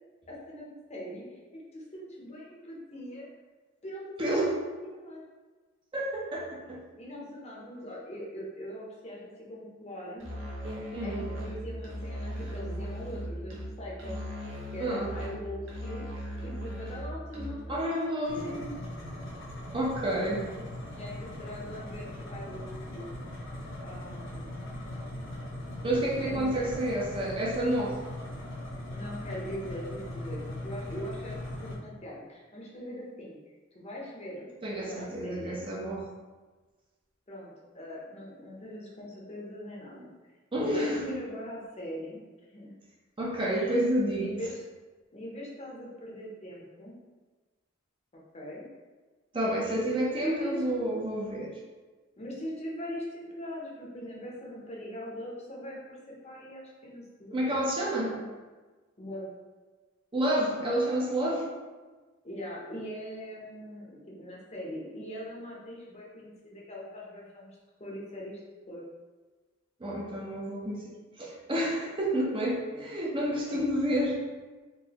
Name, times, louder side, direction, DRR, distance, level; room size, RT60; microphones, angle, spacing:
voice 1, 0.3-3.3 3.8-5.2 7.0-10.3 11.0-16.0 16.4-18.6 20.2-23.1 23.7-24.7 26.2-26.7 28.9-33.4 33.7-34.5 34.7-35.6 37.3-40.1 40.7-42.2 42.5-42.7 43.5-43.8 44.2-44.6 45.1-47.0 48.1-48.7 49.6-51.1 52.2-57.6 58.0-58.3 59.0-59.3 62.2-68.4 68.7-68.8 72.1-72.2 72.7-72.9 73.5-73.6, equal, 35° left, -3 dB, 0.7 m, -41 dB
voice 2, 4.2-4.6 5.9-6.8 10.9-11.3 14.8-15.1 17.7-18.6 19.7-20.5 25.8-28.0 34.6-36.1 40.5-41.2 43.2-44.3 49.3-51.6 57.3-58.2 60.1-61.5 69.8-70.9 71.2-74.2, right 1 dB, 25° right, -4 dB, 0.6 m, -29 dB
Musical instrument, 10.2-17.8, equal, 75° right, 0.8 m, -38 dB
sound 1, 18.2-31.7, left 1 dB, 75° left, 1.1 m, -40 dB
3.8 x 2.6 x 2.8 m, 1.3 s
head